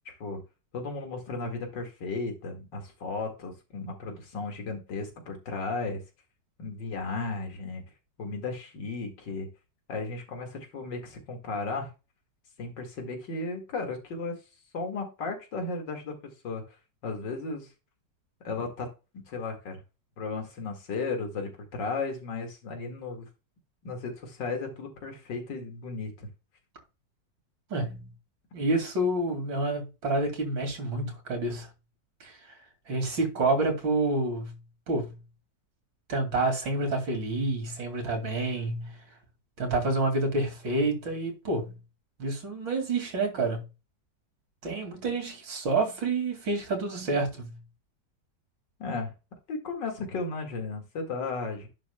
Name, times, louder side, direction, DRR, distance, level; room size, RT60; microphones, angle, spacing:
voice 1, 0.1-0.4 0.7-6.0 6.6-7.8 8.2-9.5 9.9-11.9 12.6-14.4 14.7-16.1 16.4-16.6 17.0-17.7 18.4-18.9 19.1-19.8 20.2-23.3 23.8-26.3 48.8-49.1 49.5-51.7, left 3 dB, 75° left, 2.6 m, -35 dB
voice 2, 27.7-28.1 28.5-31.7 32.2-32.4 32.9-34.5 34.9-35.1 36.1-39.0 39.6-41.8 42.2-43.6 44.6-47.6, right 2 dB, 90° right, 3.1 m, -28 dB
10.5 x 6.5 x 2.2 m
omnidirectional pair, 2.0 m